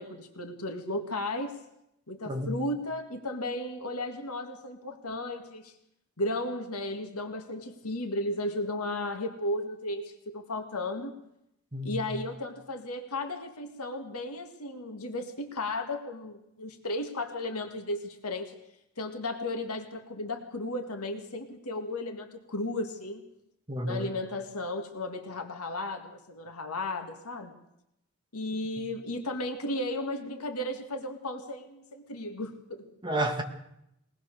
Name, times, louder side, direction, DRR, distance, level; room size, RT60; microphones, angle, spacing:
voice 1, 0.0-1.5 2.1-5.7 6.2-11.1 11.8-18.6 19.0-23.3 23.8-27.5 28.3-32.9, left 1 dB, 85° left, 2.0 m, -34 dB
voice 2, 11.7-12.1 23.7-24.1 28.8-28.9 33.0-33.4, right 1 dB, 20° right, 2.0 m, -31 dB
22.0 x 18.5 x 6.7 m
head